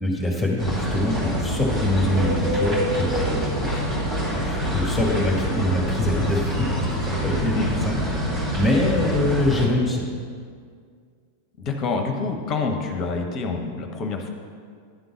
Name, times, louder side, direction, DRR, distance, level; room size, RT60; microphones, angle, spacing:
voice 1, 0.0-3.8 4.4-6.5 7.0-7.5 7.8-10.1, left 1 dB, 5° left, -2 dB, 1.5 m, -24 dB
sound 1, 0.6-9.7, equal, 35° right, 2.5 m, -25 dB
voice 2, 7.3-7.7 11.6-14.3, left 4 dB, 35° left, 4 dB, 0.8 m, -27 dB
10.5 x 3.8 x 7.1 m, 2.1 s
figure-of-eight pair, 90°, 0 cm